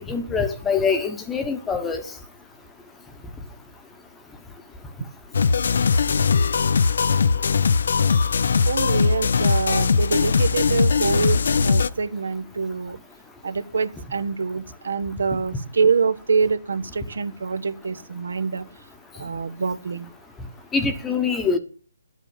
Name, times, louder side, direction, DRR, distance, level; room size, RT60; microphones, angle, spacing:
voice 1, 0.1-2.0 20.7-21.6, left 5 dB, 10° left, 1.1 m, -24 dB
sound 1, 5.3-11.9, left 5 dB, 65° left, 0.6 m, -20 dB
voice 2, 8.6-13.0 13.4-18.7 19.2-20.1, right 5 dB, 70° right, 1.2 m, -25 dB
11.5 x 8.0 x 7.2 m
hypercardioid pair, 160°, 0 cm